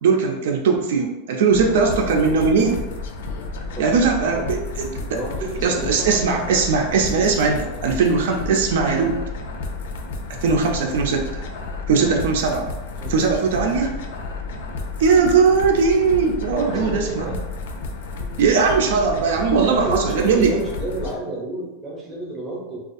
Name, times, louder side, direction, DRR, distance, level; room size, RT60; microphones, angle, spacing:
voice 1, 0.0-2.8 3.8-5.2 5.6-9.2 10.4-11.4 11.9-12.7 13.1-13.9 15.0-17.4 18.4-20.5, right 5 dB, 70° right, 1 dB, 0.4 m, -19 dB
sound 1, 1.5-21.2, left 3 dB, 70° left, 0.3 m, -31 dB
voice 2, 1.6-2.6 3.7-4.0 4.2-4.6 5.1-6.5 7.4-7.6 12.0-12.1 13.0-13.8 16.5-17.3 19.5-22.8, right 2 dB, 10° right, -4 dB, 0.6 m, -32 dB
2.4 x 2.3 x 2.5 m, 1.0 s
supercardioid pair, 170°, 0 cm